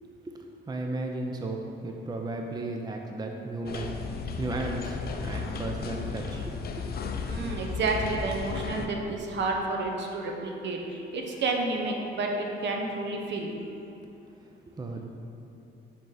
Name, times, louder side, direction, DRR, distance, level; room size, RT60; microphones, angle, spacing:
voice 1, 0.7-3.9 4.4-6.9 7.2-7.3 14.8-15.0, right 2 dB, 20° right, 2 dB, 0.5 m, -34 dB
sound 1, 3.7-8.9, left 5 dB, 50° left, 0.6 m, -34 dB
voice 2, 7.3-13.5, right 3 dB, 65° right, 1 dB, 1.0 m, -30 dB
7.1 x 3.9 x 4.8 m, 2.8 s
cardioid pair, 90°, 20 cm